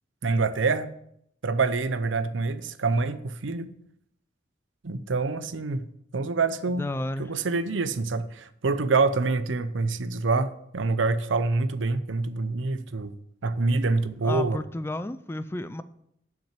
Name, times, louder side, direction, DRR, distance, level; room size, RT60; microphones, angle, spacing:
voice 1, 0.2-0.9 1.4-3.7 4.8-5.9 6.1-6.9 7.2-13.1 13.4-14.6, right 3 dB, 80° right, 0.6 m, -26 dB
voice 2, 6.8-7.3 14.2-15.8, left 1 dB, 10° left, 0.3 m, -32 dB
7.3 x 6.0 x 7.5 m
head